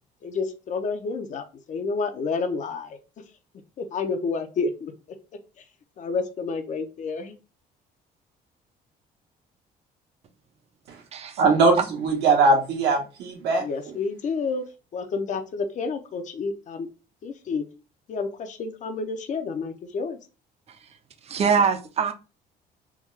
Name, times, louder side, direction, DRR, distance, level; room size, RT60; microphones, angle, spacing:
voice 1, 0.2-3.0 3.8-4.9 6.0-7.3 13.6-14.6 14.9-16.9 17.2-17.7 18.1-20.2, left 4 dB, 45° left, 7 dB, 0.6 m, -29 dB
voice 2, 11.4-13.6, right 3 dB, 80° right, 1 dB, 1.2 m, -20 dB
voice 3, 21.2-22.1, right 6 dB, 40° right, 8 dB, 0.5 m, -23 dB
3.5 x 2.3 x 3.2 m, 0.31 s
cardioid pair, 110°, 17 cm